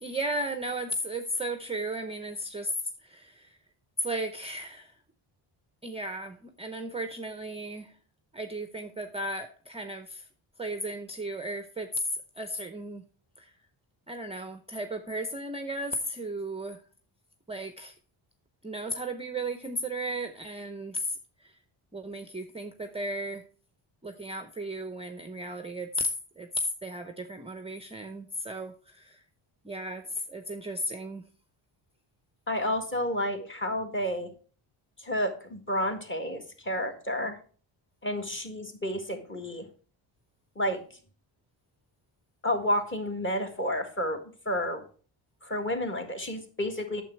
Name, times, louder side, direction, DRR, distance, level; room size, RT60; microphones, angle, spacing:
voice 1, 0.0-2.8 3.0-3.6 4.0-4.9 5.8-7.9 8.3-10.3 10.6-11.9 12.4-13.0 13.4-13.5 14.1-16.8 17.5-18.0 18.6-21.6 21.9-23.4 24.0-26.1 26.4-26.5 26.8-29.2 29.6-31.3, right 1 dB, 10° right, 8 dB, 0.6 m, -35 dB
voice 2, 32.5-34.3 35.0-37.4 38.0-39.6 40.6-40.8 42.4-44.2 44.5-44.8 45.4-47.0, left 1 dB, 25° left, 4 dB, 1.8 m, -30 dB
9.1 x 7.1 x 4.5 m, 0.40 s
cardioid pair, 130°, 49 cm